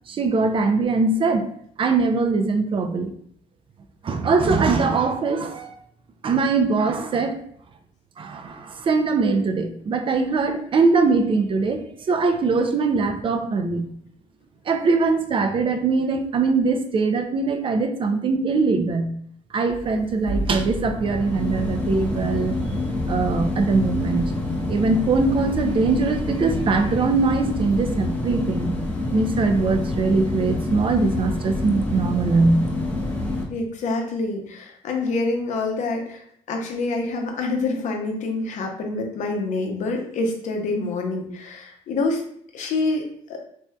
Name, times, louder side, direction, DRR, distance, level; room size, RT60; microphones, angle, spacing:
voice 1, 0.1-1.5 1.8-3.1 4.0-5.7 6.2-7.4 8.2-13.9 14.7-19.1 19.5-22.6 23.1-24.3 24.7-28.7 29.1-32.6, right 4 dB, 40° right, 6 dB, 0.4 m, -22 dB
sound 1, 19.7-33.5, left 2 dB, 15° left, 0.8 m, -27 dB
voice 2, 33.5-42.2 42.5-43.0 43.3-43.4, left 3 dB, 70° left, 2 dB, 0.7 m, -26 dB
3.2 x 2.6 x 2.2 m, 0.65 s
cardioid pair, 80°, 13 cm